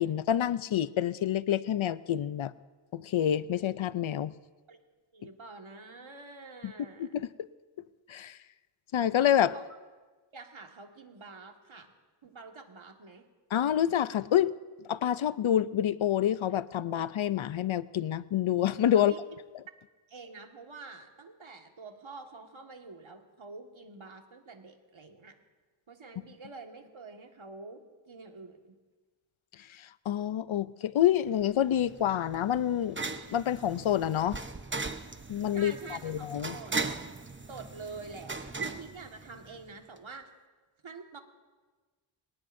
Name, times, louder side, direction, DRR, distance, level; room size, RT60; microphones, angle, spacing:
voice 1, 0.0-2.5 2.9-4.3 6.6-6.7 7.0-7.5 8.1-8.4 8.9-9.5 13.5-14.6 14.9-19.1 29.7-33.0 33.3-34.4 35.3-36.6, left 10 dB, 70° left, 16 dB, 0.6 m, -27 dB
voice 2, 5.1-7.1 9.5-9.6 10.3-11.9 12.2-13.2 18.9-19.2 20.1-25.4 25.9-28.6 35.5-36.3 36.5-36.7 37.5-40.3 40.8-41.2, right 4 dB, 70° right, 3 dB, 1.9 m, -47 dB
sound 1, 31.4-39.7, right 4 dB, 25° right, 0.9 m, -39 dB
25.5 x 18.5 x 2.7 m, 1.3 s
wide cardioid pair, 55°, 49 cm